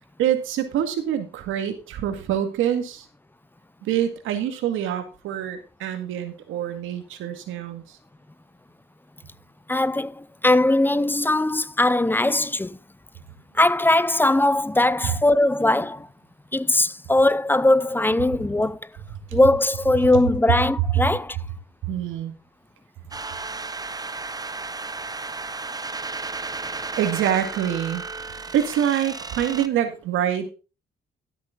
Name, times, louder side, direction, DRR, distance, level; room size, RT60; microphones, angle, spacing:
voice 1, 0.2-3.1 3.8-8.0 21.8-22.3 23.5-23.6 27.0-28.0 28.5-30.5, right 10 dB, 90° right, 2.0 m, -25 dB
voice 2, 9.7-12.8 13.5-16.1 16.5-18.9 19.3-21.4, left 2 dB, 10° left, 0.6 m, -20 dB
sound 1, 23.1-29.7, right 3 dB, 20° right, 0.8 m, -33 dB
13.0 x 8.4 x 3.8 m
cardioid pair, 90°, 20 cm